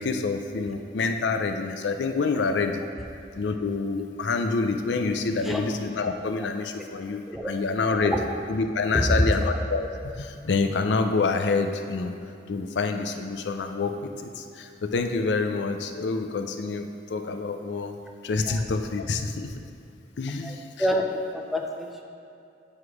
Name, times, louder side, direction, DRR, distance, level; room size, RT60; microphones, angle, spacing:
voice 1, 0.0-2.8 3.3-8.1 8.5-9.9 10.2-12.1 12.5-17.9 18.2-19.5 20.2-20.6, left 4 dB, 80° left, 6 dB, 0.5 m, -27 dB
voice 2, 7.9-8.3 8.9-9.1 18.5-18.6 20.4-21.0 21.3-22.0, equal, ahead, 1 dB, 0.5 m, -28 dB
9.6 x 3.2 x 4.8 m, 2.6 s
head